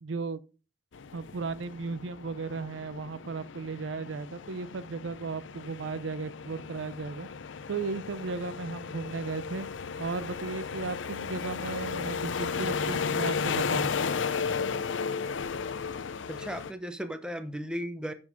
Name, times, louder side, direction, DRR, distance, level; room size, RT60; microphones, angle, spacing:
voice 1, 0.0-0.4 1.1-7.3 7.7-9.7 10.0-13.9, right 4 dB, 85° right, 0.5 m, -35 dB
sound 1, 0.9-16.7, left 5 dB, 85° left, 0.6 m, -34 dB
voice 2, 16.3-18.1, equal, 5° right, 0.8 m, -36 dB
9.1 x 5.4 x 5.1 m
head